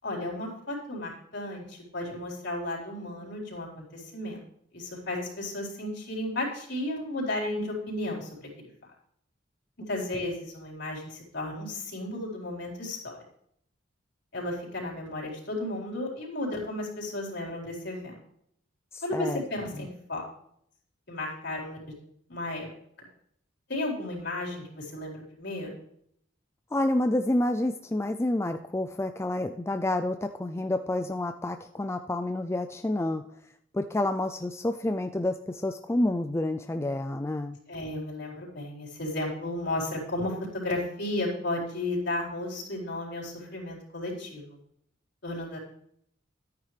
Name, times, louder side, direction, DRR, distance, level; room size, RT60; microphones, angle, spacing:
voice 1, 0.0-4.4 4.7-8.5 9.9-13.2 14.3-18.2 19.0-20.2 21.1-21.9 22.3-22.7 23.7-25.7 37.7-44.6 45.2-45.6, left 1 dB, 60° left, -2 dB, 4.3 m, -34 dB
voice 2, 18.9-19.4 19.7-19.8 26.7-33.2 33.7-37.6, left 1 dB, 15° left, 7 dB, 0.4 m, -29 dB
13.0 x 9.6 x 3.3 m, 0.70 s
head